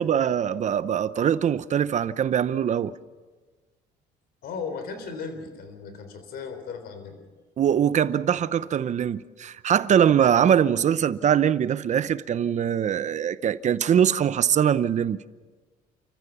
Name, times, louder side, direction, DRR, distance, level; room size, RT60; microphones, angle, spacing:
voice 1, 0.0-2.9 7.6-15.2, right 9 dB, 45° right, 0.8 m, -22 dB
voice 2, 4.4-7.2, left 5 dB, 65° left, 3.7 m, -36 dB
29.5 x 14.5 x 7.0 m
cardioid pair, 110°, 17 cm